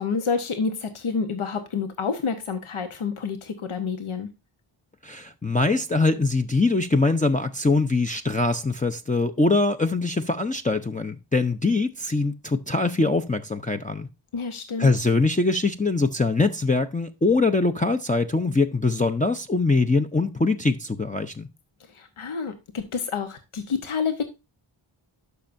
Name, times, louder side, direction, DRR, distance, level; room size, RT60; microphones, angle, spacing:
voice 1, 0.0-4.3 14.3-14.9 21.9-24.2, left 5 dB, 75° left, 1.1 m, -28 dB
voice 2, 5.0-14.1 14.8-21.5, left 3 dB, 15° left, 0.6 m, -23 dB
11.5 x 5.5 x 2.6 m
cardioid pair, 50°, 50 cm